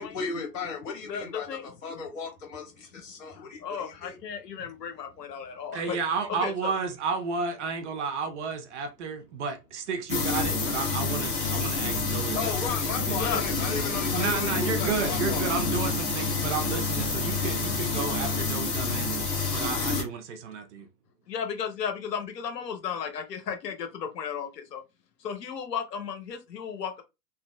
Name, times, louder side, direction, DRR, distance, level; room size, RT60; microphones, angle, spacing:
voice 1, 0.0-4.2 12.3-15.6, left 5 dB, 50° left, 1.5 m, -35 dB
voice 2, 1.1-1.6 3.3-6.0 6.3-6.7 13.2-13.4 21.3-24.8 25.2-27.0, left 7 dB, 75° left, 0.8 m, -34 dB
voice 3, 5.7-12.7 13.1-13.2 14.1-19.2 19.5-20.9, right 5 dB, 45° right, 0.6 m, -32 dB
sound 1, 10.1-20.0, left 4 dB, 20° left, 0.8 m, -28 dB
3.0 x 2.4 x 2.2 m
hypercardioid pair, 120°, 50 cm